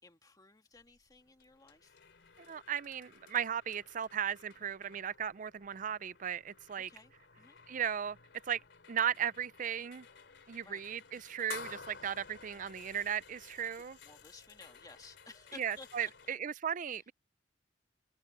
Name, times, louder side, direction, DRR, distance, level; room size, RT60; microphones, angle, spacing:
voice 1, 0.0-2.0 6.9-7.6 10.6-10.8 13.8-16.4 16.9-17.0, left 3 dB, 20° left, 1.9 m, -56 dB
sound 1, 0.7-16.3, left 5 dB, 75° left, 3.1 m, -54 dB
voice 2, 2.5-6.9 7.7-8.2 8.5-8.6 8.9-10.1 10.5-14.0 15.5-17.1, right 9 dB, 45° right, 0.5 m, -36 dB
open air
head